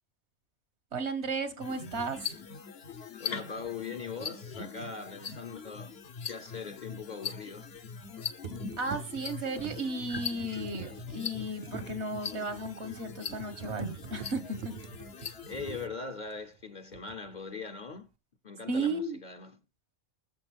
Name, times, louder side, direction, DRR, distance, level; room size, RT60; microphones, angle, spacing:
voice 1, 0.9-2.3 8.8-14.7 18.7-19.2, right 2 dB, 75° right, 1.9 m, -34 dB
sound 1, 1.6-15.9, left 6 dB, 65° left, 1.3 m, -41 dB
voice 2, 3.2-6.0 6.2-7.7 15.5-18.1 18.4-19.6, left 5 dB, 45° left, 0.9 m, -41 dB
sound 2, 4.5-4.6 7.8-8.1 8.4-16.6 16.9-17.4, right 7 dB, 50° right, 0.8 m, -45 dB
20.5 x 7.1 x 3.5 m
omnidirectional pair, 1.1 m